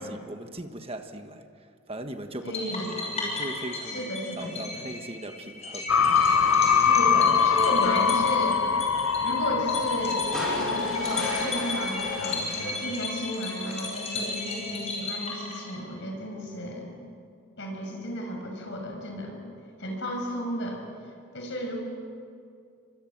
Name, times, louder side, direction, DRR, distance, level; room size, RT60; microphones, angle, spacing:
voice 1, 0.0-2.6 3.2-4.1 4.4-5.9 6.5-7.0, right 1 dB, 25° right, 6 dB, 1.4 m, -39 dB
voice 2, 2.4-2.9 3.9-4.9 6.7-8.6 9.2-17.0 17.6-19.4 19.8-20.8 21.3-21.8, equal, 55° left, 2 dB, 6.4 m, -33 dB
sound 1, 2.5-16.0, left 3 dB, 30° left, 6.4 m, -34 dB
sound 2, 5.9-12.4, left 6 dB, 70° left, 0.8 m, -24 dB
sound 3, 10.3-13.6 15.0-15.1, equal, 5° left, 7.2 m, -37 dB
29.0 x 25.0 x 7.4 m, 2.3 s
head